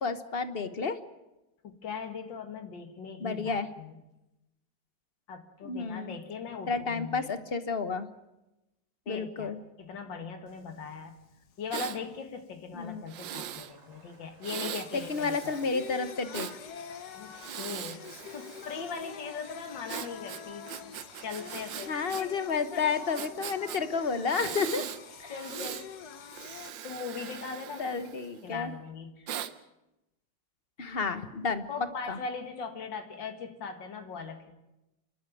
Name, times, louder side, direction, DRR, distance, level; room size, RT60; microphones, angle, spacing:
voice 1, 0.0-1.0 3.2-3.7 5.6-6.2 6.7-8.1 9.1-9.6 12.7-13.0 14.9-16.5 21.9-24.9 25.2-25.3 27.8-28.7 30.8-31.6 32.1-32.2, left 5 dB, 35° left, 11 dB, 1.2 m, -31 dB
voice 2, 1.6-4.0 5.3-7.3 9.1-9.5 9.8-11.1 11.6-15.6 17.1-20.9 21.2-22.4 22.7-22.9 25.3-25.9 26.8-28.1 28.4-29.2 31.7-34.5, left 5 dB, 90° left, 6 dB, 2.5 m, -40 dB
Singing, 10.5-26.7, left 8 dB, 65° left, 1.6 m, -47 dB
Breathing, 11.7-12.0 13.1-13.7 14.4-16.6 17.3-19.0 19.9-22.2 22.5-22.6 23.2-23.8 24.3-25.0 25.4-25.9 26.3-28.5 29.3-29.5, right 10 dB, 90° right, 1.6 m, -40 dB
sound 1, 13.5-25.5, right 2 dB, 70° right, 3.9 m, -57 dB
29.5 x 12.0 x 9.2 m, 0.96 s
omnidirectional pair, 1.9 m